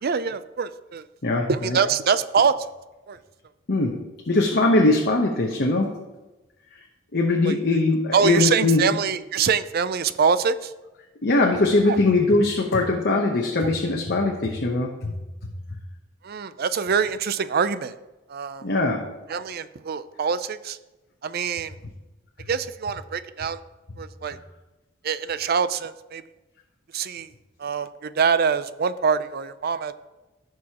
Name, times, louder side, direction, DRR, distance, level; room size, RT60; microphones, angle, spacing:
voice 1, 0.0-1.1 1.5-2.7 3.1-3.2 7.4-7.5 8.1-10.7 11.9-12.0 16.2-18.0 18.3-18.7 19.3-20.8 21.2-21.7 22.5-23.6 24.0-24.4 25.0-26.2 26.9-27.3 27.6-29.9, right 6 dB, 50° right, 14 dB, 0.4 m, -24 dB
voice 2, 1.2-1.8 3.7-4.0 4.3-6.0 7.1-8.8 11.2-15.1 18.6-19.1, left 2 dB, 55° left, 0 dB, 0.9 m, -21 dB
16.0 x 6.2 x 2.9 m, 1.1 s
head